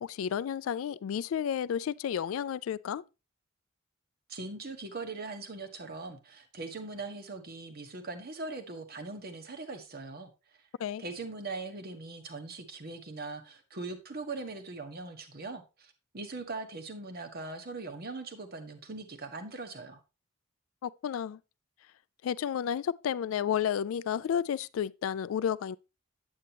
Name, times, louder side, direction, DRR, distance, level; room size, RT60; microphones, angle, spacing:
voice 1, 0.0-3.0 10.8-11.0 20.8-21.4 22.2-25.8, left 8 dB, 80° left, 0.3 m, -31 dB
voice 2, 4.3-10.3 11.0-20.0, right 3 dB, 50° right, 1.3 m, -41 dB
8.7 x 8.4 x 2.9 m
head